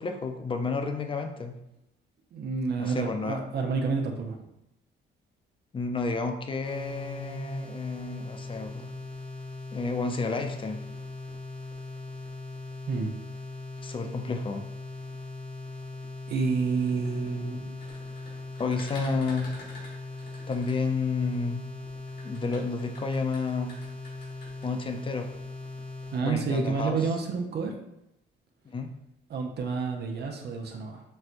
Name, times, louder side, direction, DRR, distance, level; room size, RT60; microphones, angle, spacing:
voice 1, 0.0-1.5 2.8-3.4 5.7-8.9 9.7-10.8 13.8-14.6 18.6-19.5 20.5-21.6 22.2-23.8 24.6-25.3 26.2-27.0 28.7-28.9, left 4 dB, 25° left, 6 dB, 0.4 m, -31 dB
voice 2, 2.3-4.4 12.9-13.1 16.3-17.7 26.1-27.7 29.3-31.0, right 4 dB, 55° right, 2 dB, 0.6 m, -29 dB
sound 1, 6.6-26.2, left 2 dB, 5° left, 0.7 m, -40 dB
sound 2, 16.7-21.4 22.1-24.7, left 2 dB, 55° left, 1.3 m, -47 dB
4.2 x 2.1 x 2.5 m, 0.84 s
cardioid pair, 90°, 20 cm